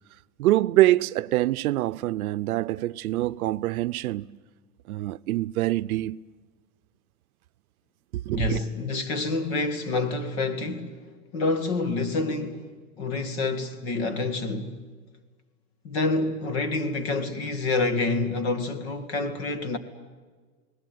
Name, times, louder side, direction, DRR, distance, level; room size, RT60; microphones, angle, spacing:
voice 1, 0.4-4.4 4.9-6.2 8.1-8.6, right 16 dB, 70° right, 0.7 m, -25 dB
voice 2, 8.3-11.0 11.3-12.7 13.0-14.8 15.8-19.8, left 3 dB, 45° left, 2.2 m, -27 dB
30.0 x 19.5 x 9.3 m
supercardioid pair, 175°, 44 cm